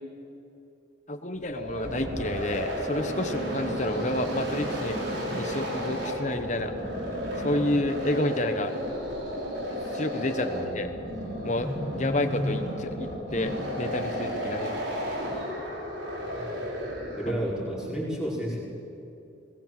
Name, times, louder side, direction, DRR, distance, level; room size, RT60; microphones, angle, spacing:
voice 1, 1.1-6.7 7.4-8.7 9.9-10.9 11.4-14.7, left 1 dB, 40° left, 7 dB, 1.2 m, -30 dB
sound 1, 1.4-17.5, equal, 70° right, 5.1 m, -33 dB
voice 2, 10.5-11.1 17.2-18.6, equal, 5° right, -7 dB, 5.3 m, -32 dB
21.0 x 19.5 x 7.8 m, 2.8 s
head